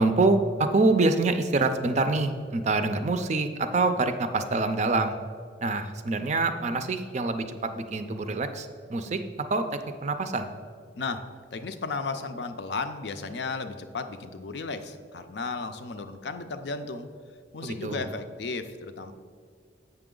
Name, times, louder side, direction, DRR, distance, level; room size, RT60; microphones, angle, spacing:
voice 1, 0.0-5.2 5.6-10.5 17.6-18.0, right 3 dB, 35° right, 8 dB, 0.4 m, -26 dB
voice 2, 11.5-17.1 17.5-19.1, left 4 dB, 60° left, 8 dB, 0.5 m, -34 dB
7.8 x 5.9 x 3.8 m, 2.1 s
head